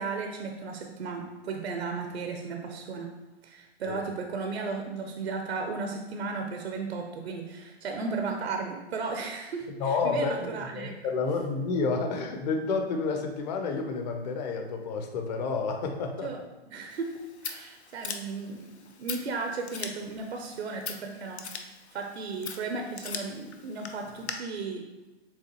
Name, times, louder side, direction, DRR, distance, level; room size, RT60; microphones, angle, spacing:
voice 1, 0.0-3.1 3.4-11.0 16.2-16.4 16.7-17.1 17.4-18.7 19.0-21.5 21.9-24.8, right 4 dB, 70° right, 3 dB, 0.7 m, -35 dB
voice 2, 9.8-16.3, left 4 dB, 40° left, 4 dB, 0.7 m, -30 dB
Scissors, 16.9-24.3, left 6 dB, 80° left, 0.6 m, -41 dB
7.1 x 2.4 x 3.0 m, 1.1 s
figure-of-eight pair, 120°, 33 cm